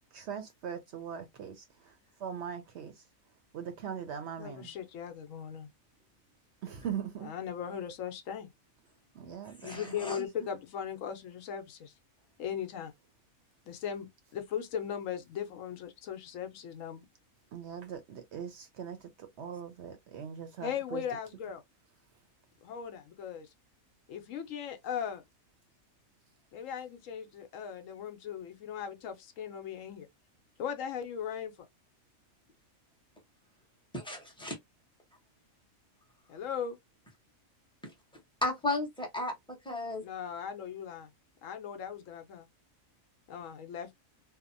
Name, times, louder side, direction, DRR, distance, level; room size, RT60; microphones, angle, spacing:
voice 1, 0.1-1.6 2.2-2.9 3.5-4.7 6.6-7.3 9.2-10.5 17.5-21.0, right 8 dB, 65° right, 0.7 m, -40 dB
voice 2, 4.4-5.7 7.2-8.5 9.6-11.9 12.4-12.9 13.7-17.0 20.6-21.6 22.6-23.5 24.1-25.2 26.5-30.1 30.6-31.7 36.3-36.8 40.0-41.1 41.4-42.5 43.3-43.9, left 8 dB, 75° left, 0.9 m, -38 dB
voice 3, 9.6-10.2 33.9-34.5 38.4-39.3 39.6-40.0, left 2 dB, 5° left, 0.7 m, -34 dB
2.8 x 2.0 x 2.5 m
omnidirectional pair, 1.4 m